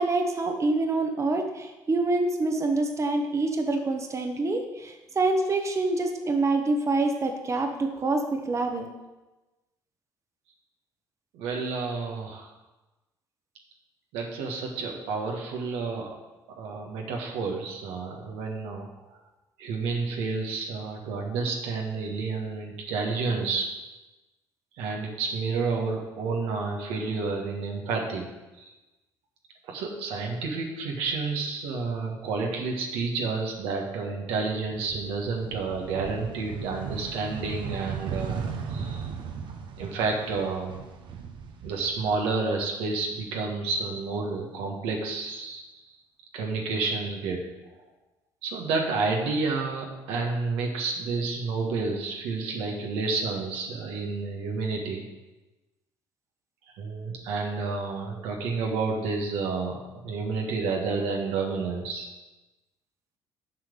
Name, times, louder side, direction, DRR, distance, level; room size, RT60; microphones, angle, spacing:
voice 1, 0.0-8.9, right 2 dB, 30° right, 4 dB, 1.1 m, -26 dB
voice 2, 11.3-12.5 14.1-16.1 16.6-18.9 19.6-23.7 24.8-28.3 28.6-28.7 29.7-39.0 39.8-40.8 41.6-45.6 46.3-47.5 48.4-55.0 56.7-62.1, right 4 dB, 75° right, 1 dB, 1.5 m, -30 dB
sound 1, 34.5-42.6 43.0-44.1, right 6 dB, 55° right, 1.0 m, -37 dB
7.5 x 5.0 x 6.7 m, 1.1 s
hypercardioid pair, 65°, 9 cm